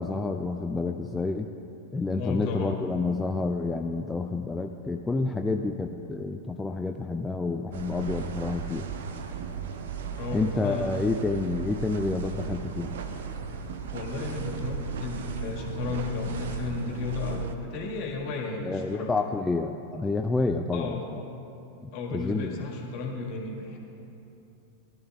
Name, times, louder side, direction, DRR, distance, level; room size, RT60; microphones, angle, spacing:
voice 1, 0.0-1.5 1.9-8.9 10.3-12.9 18.6-21.2 21.8-22.7, left 3 dB, 10° left, 4 dB, 0.4 m, -29 dB
voice 2, 2.2-2.8 10.2-11.0 13.9-19.2 20.7-21.1 21.9-23.8, left 4 dB, 45° left, 0 dB, 1.8 m, -34 dB
sound 1, 7.7-17.6, right 6 dB, 60° right, 0.7 m, -36 dB
17.5 x 12.0 x 2.4 m, 2.8 s
figure-of-eight pair, 90°, 0 cm